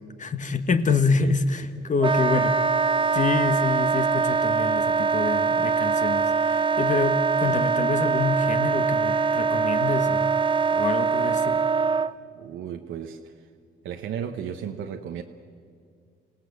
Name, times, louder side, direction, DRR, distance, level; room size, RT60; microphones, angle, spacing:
voice 1, 0.2-10.3 10.7-11.6, left 4 dB, 40° left, 8 dB, 1.4 m, -27 dB
Wind instrument woodwind instrument, 2.0-12.1, right 5 dB, 25° right, 0.7 m, -23 dB
voice 2, 12.3-13.3 13.8-15.2, right 8 dB, 80° right, 3 dB, 1.2 m, -34 dB
26.5 x 17.0 x 8.0 m, 2.2 s
cardioid pair, 90°, 20 cm